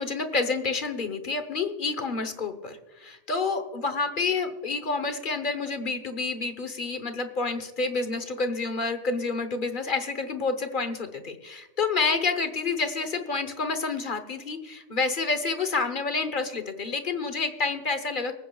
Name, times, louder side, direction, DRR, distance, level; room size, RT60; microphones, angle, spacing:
voice 1, 0.0-18.4, left 4 dB, 45° left, 9 dB, 1.1 m, -29 dB
25.0 x 9.3 x 2.3 m, 1.1 s
omnidirectional pair, 1.2 m